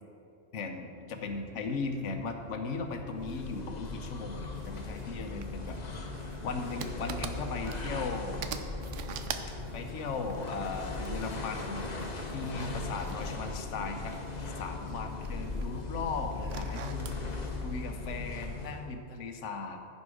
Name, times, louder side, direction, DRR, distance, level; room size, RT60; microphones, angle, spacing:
voice 1, 0.5-6.0 6.4-8.5 9.7-11.9 12.3-14.2 14.6-17.1 17.6-19.8, left 4 dB, 70° left, 5 dB, 1.2 m, -37 dB
sound 1, 1.1-17.7, left 1 dB, 30° right, 2.9 m, -50 dB
sound 2, 3.1-18.9, left 3 dB, 35° left, 1.0 m, -38 dB
sound 3, 4.5-5.1 5.4-8.1 8.4-11.6 12.2-14.3 14.6-15.8 16.3-17.2, right 7 dB, 75° right, 1.0 m, -43 dB
15.0 x 5.3 x 4.8 m, 2.7 s
omnidirectional pair, 1.3 m